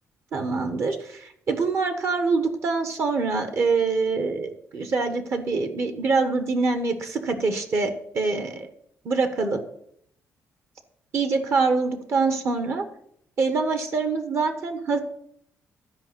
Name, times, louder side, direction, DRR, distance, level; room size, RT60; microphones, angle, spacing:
voice 1, 0.3-8.7 9.0-9.6 11.1-12.8 13.4-15.0, right 4 dB, 55° right, 7 dB, 1.3 m, -25 dB
12.0 x 5.2 x 8.0 m, 0.69 s
cardioid pair, 140°, 6 cm